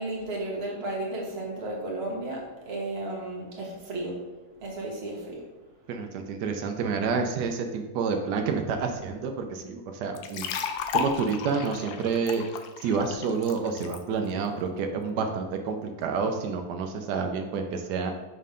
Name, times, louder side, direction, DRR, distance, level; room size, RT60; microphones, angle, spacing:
voice 1, 0.0-4.2 4.6-5.4, right 2 dB, 40° right, -2 dB, 1.4 m, -33 dB
voice 2, 5.9-10.5 10.9-12.4 12.8-18.1, right 5 dB, 85° right, 4 dB, 1.2 m, -29 dB
sound 1, 10.1-14.0, left 7 dB, 80° left, 1.1 m, -33 dB
5.5 x 5.4 x 3.7 m, 1.2 s
omnidirectional pair, 1.7 m